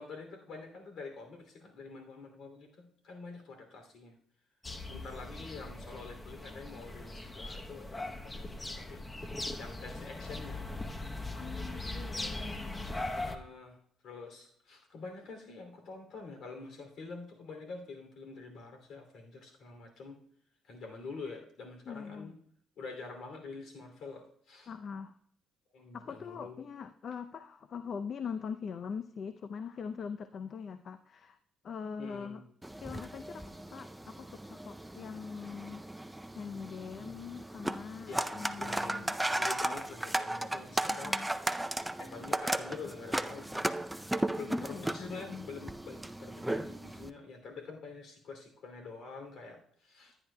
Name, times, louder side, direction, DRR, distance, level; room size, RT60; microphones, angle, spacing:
voice 1, 0.0-4.1 4.9-9.0 9.6-10.6 13.1-13.8 14.0-20.2 20.7-22.3 22.8-24.7 25.7-26.6 32.0-32.4 38.1-41.2 41.6-41.7 42.0-43.7 44.3-50.2, left 4 dB, 70° left, 4 dB, 2.7 m, -46 dB
sound 1, 4.6-13.4, left 2 dB, 20° left, 0.8 m, -40 dB
voice 2, 11.4-13.0 21.9-22.3 24.7-25.1 25.9-31.4 31.6-32.4 32.8-35.8 36.3-39.2 40.9-41.3 44.5-45.5, left 6 dB, 55° left, 10 dB, 0.5 m, -42 dB
sound 2, 32.6-47.1, right 1 dB, 5° right, 0.5 m, -36 dB
15.0 x 9.9 x 2.2 m, 0.64 s
cardioid pair, 90°, 0 cm